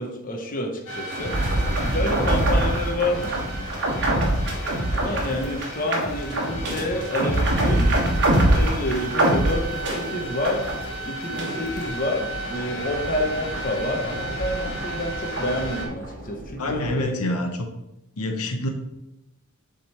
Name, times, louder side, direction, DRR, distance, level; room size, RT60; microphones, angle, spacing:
voice 1, 0.0-3.4 4.8-7.9 8.5-10.6 11.1-17.1, left 1 dB, 40° left, 2 dB, 0.9 m, -29 dB
sound 1, 0.9-15.9, right 1 dB, 60° left, 1.7 m, -34 dB
sound 2, 1.1-11.0 11.3-17.0, right 1 dB, 55° right, 1.4 m, -25 dB
voice 2, 16.6-17.7 18.2-18.7, left 1 dB, 80° left, 4 dB, 0.9 m, -26 dB
7.6 x 3.7 x 4.3 m, 0.92 s
head